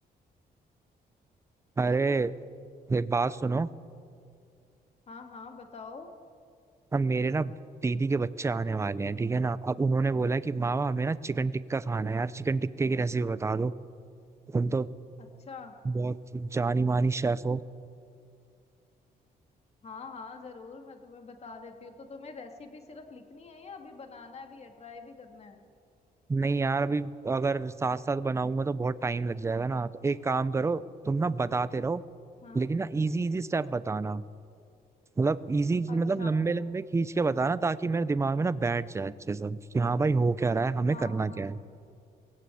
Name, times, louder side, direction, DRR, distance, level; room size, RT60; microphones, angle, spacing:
voice 1, 1.8-2.3 2.9-3.7 6.9-7.5 7.8-13.7 14.5-14.9 15.8-17.6 26.3-32.0 32.5-34.2 35.2-41.6, right 3 dB, 15° right, 17 dB, 0.5 m, -28 dB
voice 2, 5.1-6.1 15.5-15.8 19.8-25.6 32.4-32.7 35.9-36.3 40.9-41.5, left 4 dB, 40° left, 4 dB, 2.2 m, -45 dB
21.0 x 16.5 x 8.5 m, 2.4 s
cardioid pair, 140°, 17 cm